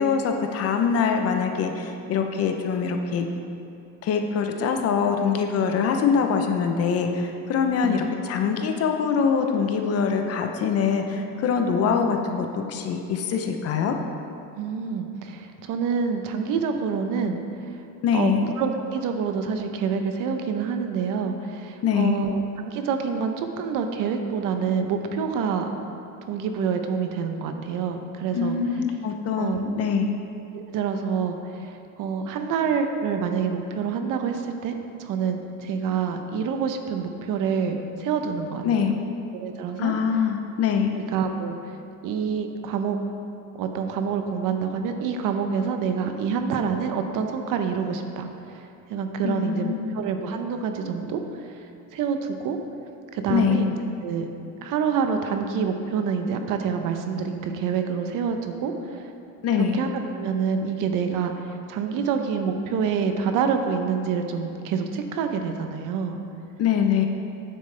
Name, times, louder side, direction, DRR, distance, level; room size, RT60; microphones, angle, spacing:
voice 1, 0.0-3.3 4.0-14.0 18.0-18.5 21.8-22.2 28.3-30.2 38.6-39.0 39.8-41.0 49.2-49.9 53.3-53.6 59.4-59.8 66.6-67.1, left 6 dB, 40° left, 4 dB, 0.6 m, -24 dB
voice 2, 14.6-17.8 18.1-25.7 26.2-28.6 29.4-29.6 30.5-34.7 35.0-38.6 39.3-39.9 41.0-41.7 42.0-43.0 43.6-51.7 51.9-52.6 53.1-53.7 54.0-54.3 54.6-59.1 59.6-59.9 60.2-66.2, right 6 dB, 60° right, 6 dB, 0.7 m, -27 dB
9.6 x 7.5 x 3.3 m, 2.8 s
cardioid pair, 160°, 37 cm